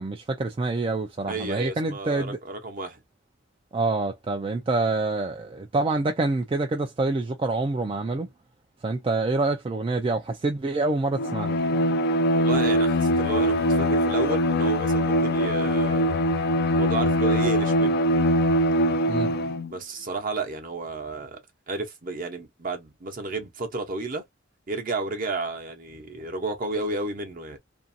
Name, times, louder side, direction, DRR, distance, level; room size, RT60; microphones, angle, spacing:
voice 1, 0.0-2.4 3.7-8.3 8.8-11.6 19.1-19.3, right 3 dB, 30° right, 0.3 m, -26 dB
voice 2, 1.3-3.0 12.4-16.1 16.7-18.0 19.7-24.2 24.7-27.6, right 3 dB, 45° right, 0.8 m, -32 dB
Bowed string instrument, 11.1-19.7, equal, 55° left, 0.4 m, -22 dB
2.6 x 2.4 x 2.6 m
head